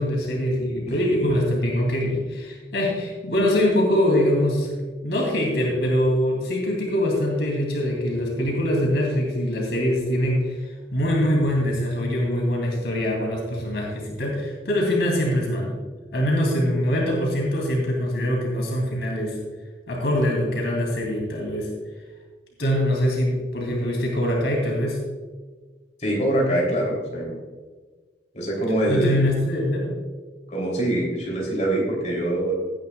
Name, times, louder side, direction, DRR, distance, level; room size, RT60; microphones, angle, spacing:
voice 1, 0.0-4.7 5.0-10.6 10.9-15.7 16.1-19.4 19.9-21.7 22.6-25.0 28.9-29.9, left 1 dB, 70° left, -1 dB, 2.9 m, -23 dB
voice 2, 26.0-27.4 28.3-29.3 30.5-32.5, right 1 dB, 40° left, -2 dB, 3.3 m, -24 dB
17.0 x 10.5 x 2.4 m, 1.4 s
head